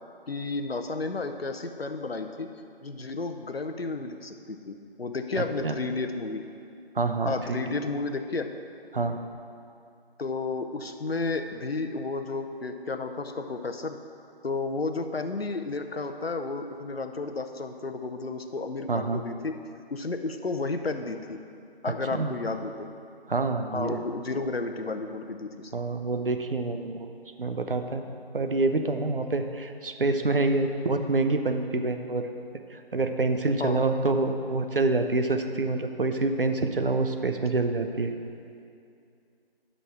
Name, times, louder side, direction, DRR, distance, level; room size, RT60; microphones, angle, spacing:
voice 1, 0.3-2.5 2.8-6.4 7.3-8.5 10.2-14.0 14.4-19.5 19.9-21.4 21.8-22.9 23.7-25.7 33.6-33.8, left 3 dB, 70° left, 7 dB, 0.8 m, -32 dB
voice 2, 5.3-5.7 6.9-7.6 8.9-9.2 18.9-19.2 22.1-22.3 23.3-24.0 25.7-27.1 27.4-28.0 28.3-32.3 32.7-38.1, right 3 dB, 60° right, 6 dB, 0.8 m, -27 dB
10.0 x 5.5 x 6.1 m, 2.5 s
figure-of-eight pair, 165°, 31 cm